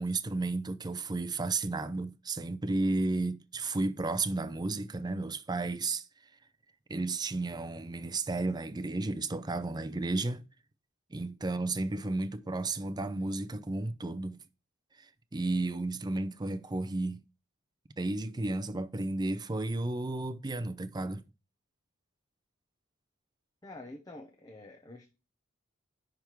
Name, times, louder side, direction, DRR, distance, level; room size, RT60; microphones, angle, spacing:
voice 1, 0.0-6.1 6.9-10.4 11.1-14.4 15.0-17.2 18.0-21.2, right 2 dB, 20° right, 0.5 m, -33 dB
voice 2, 23.6-25.1, left 2 dB, 20° left, 0.9 m, -47 dB
10.5 x 3.6 x 4.6 m
head